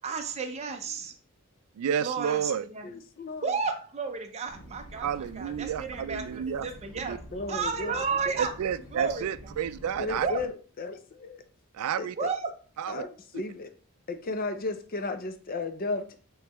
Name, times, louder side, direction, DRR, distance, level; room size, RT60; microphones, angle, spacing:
voice 1, 0.0-1.1 2.0-2.9 3.4-7.2 7.5-8.5 8.9-9.3 10.2-10.4 12.2-12.5, right 5 dB, 30° right, 0.5 m, -32 dB
voice 2, 1.8-2.6 5.0-6.7 6.9-7.2 8.4-10.3 11.7-12.2 12.8-13.0, right 8 dB, 85° right, 0.3 m, -31 dB
voice 3, 2.8-3.5 7.3-8.0 8.4-8.6 10.0-11.4 12.0-12.3 12.9-13.7 14.1-16.2, left 3 dB, 45° left, 0.5 m, -34 dB
sound 1, 4.5-10.5, equal, 75° left, 1.3 m, -47 dB
5.3 x 3.2 x 3.0 m
head